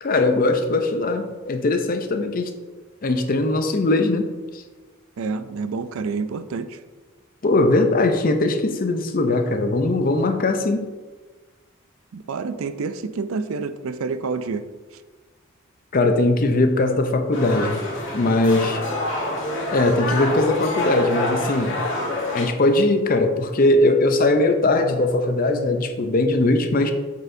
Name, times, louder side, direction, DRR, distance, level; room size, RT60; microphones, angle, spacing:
voice 1, 0.0-2.5 3.0-4.3 4.5-4.6 7.4-10.9 15.9-17.8 18.1-18.8 19.7-21.8 22.3-26.9, left 2 dB, 45° left, 6 dB, 0.5 m, -20 dB
voice 2, 5.2-6.8 12.1-14.6, right 4 dB, 80° right, 11 dB, 0.4 m, -28 dB
sound 1, 17.3-22.5, left 1 dB, 65° left, 1.4 m, -27 dB
8.0 x 4.4 x 2.6 m, 1.3 s
head